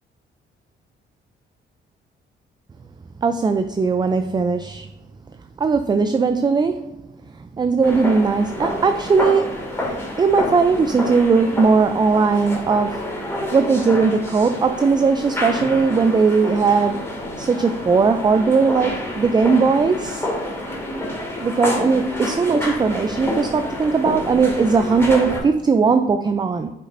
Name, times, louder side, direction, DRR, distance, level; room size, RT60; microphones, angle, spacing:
voice 1, 3.2-4.9 5.6-7.0 7.6-13.0 13.5-17.1 17.4-20.3 21.4-26.7, right 4 dB, 20° right, 9 dB, 0.4 m, -19 dB
sound 1, 7.8-25.4, left 1 dB, 15° left, 2.1 m, -28 dB
7.9 x 6.3 x 2.6 m, 0.93 s
cardioid pair, 90°, 20 cm